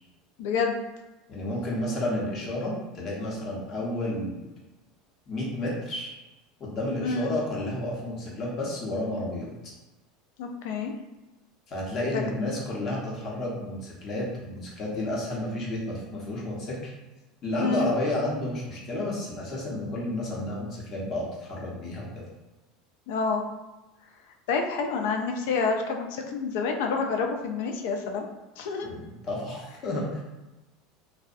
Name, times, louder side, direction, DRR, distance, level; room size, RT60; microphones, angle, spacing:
voice 1, 0.4-0.8 7.0-7.3 10.4-10.9 12.1-12.2 17.6-17.9 23.1-23.4 24.5-28.3 28.6-28.9, left 4 dB, 75° left, 3 dB, 0.3 m, -28 dB
voice 2, 1.3-4.4 5.3-6.1 6.6-9.5 11.7-16.9 17.4-22.2 28.8-30.2, left 1 dB, 35° left, -4 dB, 0.7 m, -31 dB
2.6 x 2.0 x 2.4 m, 1.0 s
supercardioid pair, 155°, 0 cm